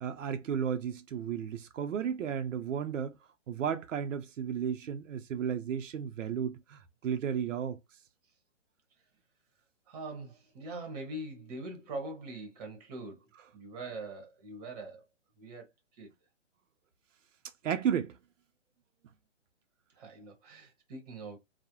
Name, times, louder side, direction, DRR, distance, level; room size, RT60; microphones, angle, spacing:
voice 1, 0.0-3.2 3.5-7.8 17.6-18.2, right 8 dB, 85° right, 0.5 m, -33 dB
voice 2, 9.9-15.0 15.4-15.7 15.9-16.1 19.9-21.4, right 2 dB, 35° right, 0.8 m, -43 dB
2.3 x 2.0 x 2.8 m
hypercardioid pair, 155°, 37 cm